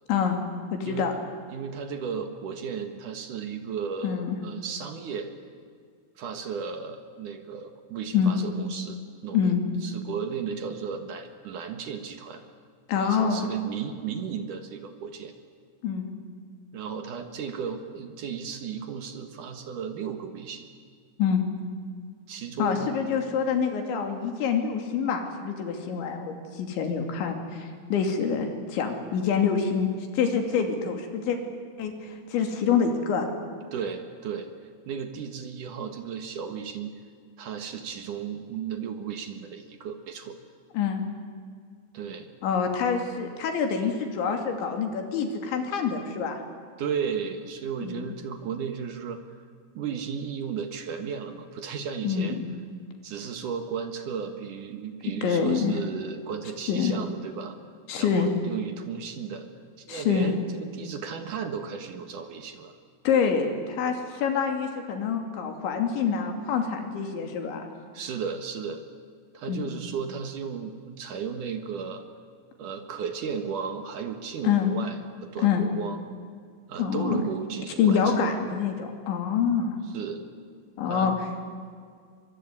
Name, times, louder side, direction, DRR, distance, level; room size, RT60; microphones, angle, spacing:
voice 1, 0.7-1.1 4.0-4.4 8.1-8.4 9.3-9.6 12.9-13.5 15.8-16.1 21.2-21.4 22.6-31.4 31.8-31.9 32.3-33.3 40.7-41.0 42.4-46.4 47.8-48.0 52.0-52.5 55.2-55.7 56.7-56.9 57.9-58.3 59.9-60.3 63.0-67.7 69.5-69.7 74.4-74.7 75.4-75.6 76.8-77.2 77.8-79.8 80.8-81.1, left 7 dB, 70° left, 4 dB, 5.0 m, -26 dB
voice 2, 1.5-5.3 6.2-9.5 9.8-12.4 13.0-15.3 16.7-20.7 22.3-22.9 33.7-34.5 34.9-36.9 37.4-40.4 41.9-42.3 46.8-49.2 49.7-52.4 53.0-57.6 58.0-59.5 59.8-62.8 67.9-68.8 69.3-72.0 72.6-76.0 76.7-78.3 79.9-80.2 80.8-81.2, right 6 dB, 65° right, 7 dB, 2.2 m, -34 dB
24.5 x 23.0 x 9.9 m, 2.1 s
omnidirectional pair, 5.5 m